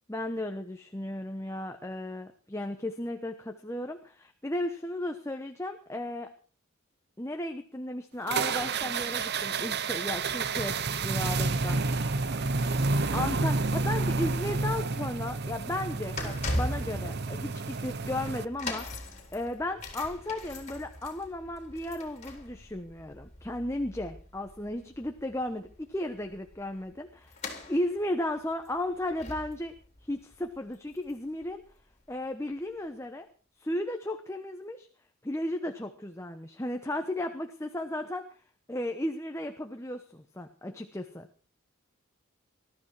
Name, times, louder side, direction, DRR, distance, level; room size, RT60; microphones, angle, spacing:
voice 1, 0.1-6.3 7.2-11.8 13.1-27.3 27.7-29.7 30.0-31.6 32.1-33.3 33.6-34.9 35.2-38.3 38.7-41.5, left 1 dB, 15° left, 6 dB, 1.0 m, -35 dB
sound 1, 8.3-18.5, right 3 dB, 50° right, 0.8 m, -30 dB
sound 2, 15.9-31.4 31.7-31.9 32.7-32.8, left 1 dB, 30° left, 3.7 m, -41 dB
20.5 x 13.0 x 4.7 m, 0.39 s
head